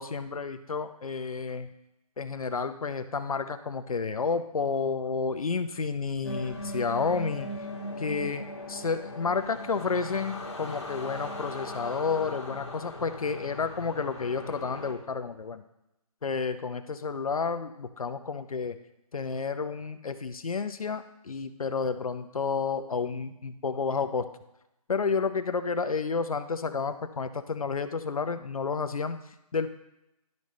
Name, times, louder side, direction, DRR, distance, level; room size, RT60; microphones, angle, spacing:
voice 1, 0.0-1.7 2.2-7.5 8.0-15.6 16.2-18.8 19.1-24.3 24.9-29.7, left 5 dB, 65° left, 10 dB, 0.7 m, -31 dB
sound 1, 6.2-14.9, left 1 dB, 45° left, 1.8 m, -39 dB
12.0 x 5.3 x 3.2 m, 0.89 s
figure-of-eight pair, 165°, 19 cm